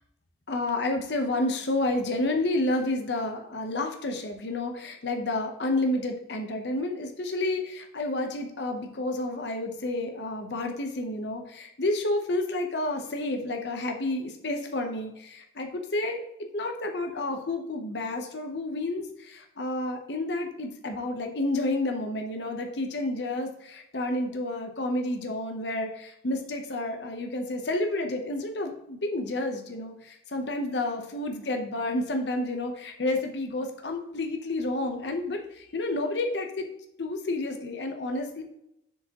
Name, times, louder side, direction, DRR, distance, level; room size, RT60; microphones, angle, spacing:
voice 1, 0.5-16.2 16.5-36.7 37.0-38.4, left 2 dB, 70° left, 4 dB, 0.8 m, -30 dB
7.0 x 4.9 x 2.9 m, 0.79 s
head